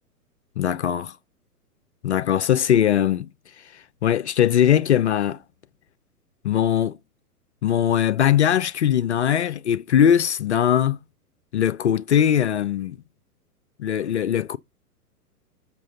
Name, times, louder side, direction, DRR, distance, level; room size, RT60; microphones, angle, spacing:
voice 1, 0.6-1.1 2.0-3.3 4.0-5.4 6.4-7.0 7.6-11.0 11.5-13.0 13.8-14.6, left 10 dB, 45° left, 0.5 m, -20 dB
7.4 x 5.8 x 3.9 m
figure-of-eight pair, 115°, 47 cm